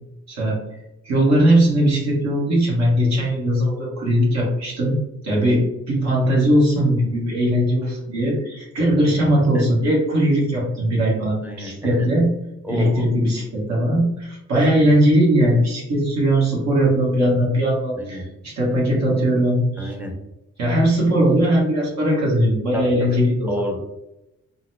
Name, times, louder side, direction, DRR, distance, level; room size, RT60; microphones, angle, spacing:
voice 1, 0.3-0.6 1.0-5.0 5.2-12.3 12.7-19.9 20.6-23.5, right 1 dB, 60° right, -4 dB, 1.3 m, -19 dB
voice 2, 11.4-12.0 12.6-13.1 14.5-14.6 18.0-18.2 19.8-20.1 22.7-23.2 23.5-23.8, equal, 5° right, 2 dB, 0.7 m, -29 dB
3.9 x 2.1 x 2.7 m, 0.90 s
cardioid pair, 90°, 30 cm